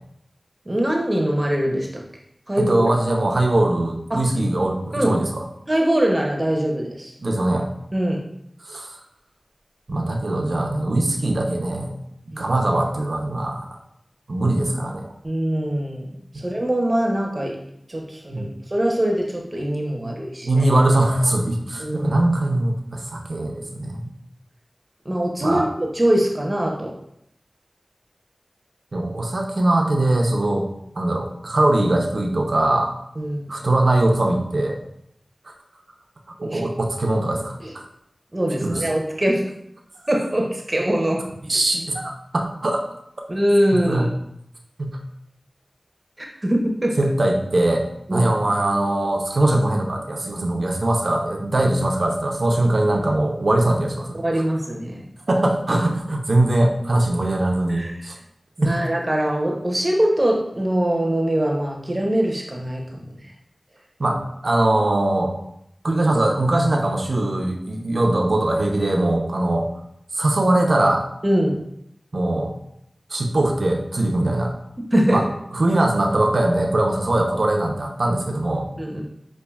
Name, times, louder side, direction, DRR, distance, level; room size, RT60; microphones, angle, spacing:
voice 1, 0.7-2.0 2.5-2.8 4.1-4.2 4.9-5.2 5.7-7.1 7.9-8.2 12.3-12.4 15.2-16.1 16.3-17.6 17.9-20.7 21.8-22.1 25.0-26.9 33.2-33.5 36.4-36.7 37.6-37.7 38.3-39.4 40.1-41.2 43.3-44.1 46.2-47.0 48.1-48.3 54.1-55.0 57.7-57.9 58.6-63.0 71.2-71.6 74.9-75.2 78.8-79.0, right 1 dB, 35° right, 0 dB, 0.7 m, -22 dB
voice 2, 2.6-5.4 7.2-7.7 8.7-8.9 9.9-11.9 12.4-13.8 14.3-15.1 16.3-16.4 18.3-18.5 20.0-20.1 20.4-24.1 25.4-25.7 28.9-30.7 30.9-32.9 33.5-34.8 36.4-37.8 38.6-38.9 41.5-42.8 43.7-44.1 44.8-45.0 47.0-47.8 48.1-54.2 55.3-58.1 58.6-58.7 64.0-65.3 65.8-69.7 70.1-71.0 72.1-72.6 73.1-74.5 75.1-75.2 75.5-78.7, right 1 dB, 70° right, 2 dB, 0.6 m, -21 dB
5.3 x 2.6 x 2.3 m, 0.75 s
wide cardioid pair, 40°, 0 cm